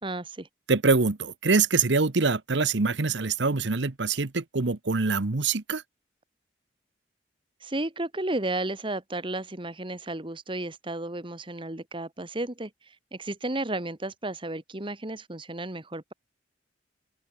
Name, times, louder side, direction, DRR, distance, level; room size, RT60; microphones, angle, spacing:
voice 1, 0.0-0.5 7.6-16.1, right 2 dB, 25° right, 2.0 m, -33 dB
voice 2, 0.7-5.8, right 4 dB, 65° right, 1.0 m, -24 dB
open air
head